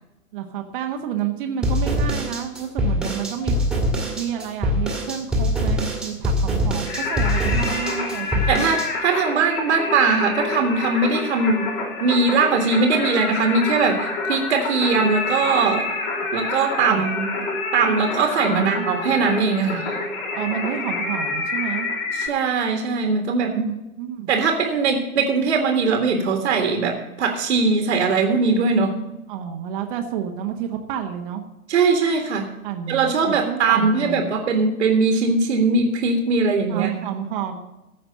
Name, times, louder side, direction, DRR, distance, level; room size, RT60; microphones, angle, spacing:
voice 1, 0.3-3.6 4.2-8.7 16.8-17.0 18.5-18.9 20.3-21.9 23.5-24.3 29.3-31.4 32.6-34.3 36.7-37.6, right 9 dB, 35° right, 3 dB, 1.3 m, -30 dB
sound 1, 1.6-8.9, equal, ahead, 2.0 m, -23 dB
Singing, 6.9-22.3, left 3 dB, 40° left, 2.9 m, -28 dB
voice 2, 8.5-11.7 12.0-15.9 16.3-17.3 17.7-20.0 22.1-23.7 24.3-28.9 31.7-32.5 32.9-36.9, right 4 dB, 55° right, 3 dB, 1.9 m, -20 dB
15.0 x 5.8 x 6.8 m, 1.0 s
figure-of-eight pair, 120°, 43 cm